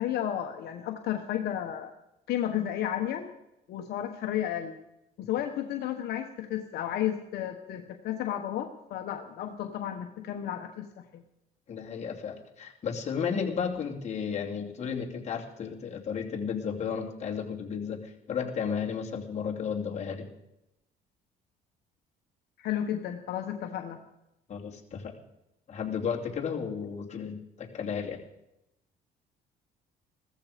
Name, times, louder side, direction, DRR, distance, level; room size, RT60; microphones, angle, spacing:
voice 1, 0.0-1.9 2.3-3.3 3.7-4.8 5.2-11.2 22.6-24.0, left 11 dB, 70° left, 4 dB, 1.3 m, -32 dB
voice 2, 11.7-20.3 24.5-25.1 25.7-28.2, left 6 dB, 40° left, 0 dB, 2.7 m, -33 dB
15.5 x 14.0 x 5.2 m, 0.88 s
cardioid pair, 110°, 17 cm